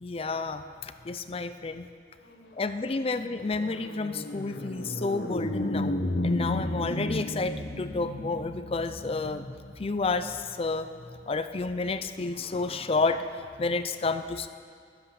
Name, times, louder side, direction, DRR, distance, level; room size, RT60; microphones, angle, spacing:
voice 1, 0.0-1.9 2.6-6.0 6.2-9.4 9.8-10.9 11.3-14.5, left 3 dB, 30° left, 11 dB, 0.5 m, -30 dB
sound 1, 2.4-11.9, left 1 dB, 70° left, 1.2 m, -34 dB
21.0 x 7.9 x 5.9 m, 2.2 s
head